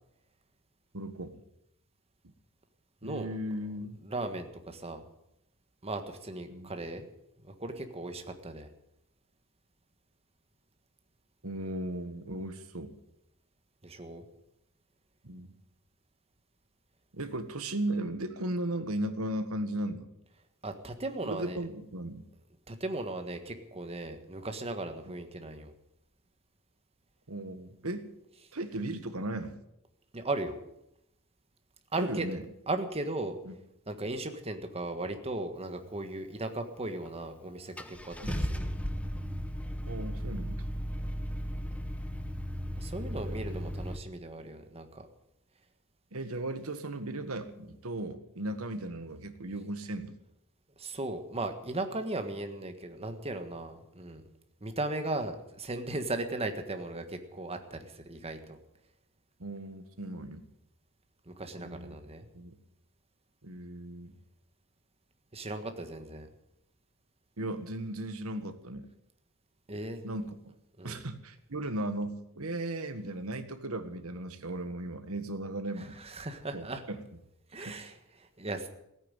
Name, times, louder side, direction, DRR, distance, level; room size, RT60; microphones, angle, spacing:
voice 1, 0.9-1.3 3.0-4.0 6.5-6.7 11.4-12.9 15.2-15.5 17.1-20.1 21.3-22.2 25.0-25.1 27.3-28.1 28.5-29.6 32.0-32.4 33.4-33.5 38.2-38.4 39.9-40.6 46.1-50.2 59.4-60.4 61.6-62.0 62.3-62.5 63.4-64.1 67.4-68.9 70.0-70.5 70.8-76.0 76.5-77.0 77.6-77.8, right 1 dB, 70° right, 9 dB, 1.6 m, -36 dB
voice 2, 4.0-5.0 5.8-7.0 7.4-8.7 13.8-14.2 20.6-21.6 22.7-25.7 30.1-30.6 31.9-32.3 32.7-33.4 33.9-38.7 42.8-45.0 50.8-54.2 54.6-58.6 61.3-62.3 65.3-66.3 69.7-70.0 70.8-71.0 75.8-76.8 77.5-78.7, right 2 dB, 30° right, 7 dB, 1.6 m, -37 dB
Car / Engine starting, 37.1-37.2 37.8-44.0, equal, 5° left, 1.0 m, -35 dB
16.5 x 9.1 x 9.0 m, 0.82 s
head